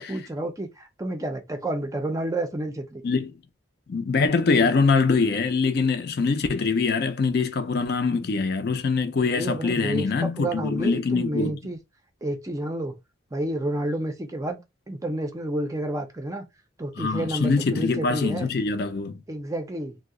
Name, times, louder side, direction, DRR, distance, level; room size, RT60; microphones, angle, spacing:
voice 1, 0.0-3.0 9.2-11.8 12.2-13.0 13.3-14.6 14.9-16.5 16.8-18.5 19.3-20.0, right 1 dB, 15° right, 0.4 m, -30 dB
voice 2, 3.9-11.5 17.0-19.2, left 4 dB, 55° left, 0.4 m, -23 dB
2.7 x 2.0 x 3.6 m
head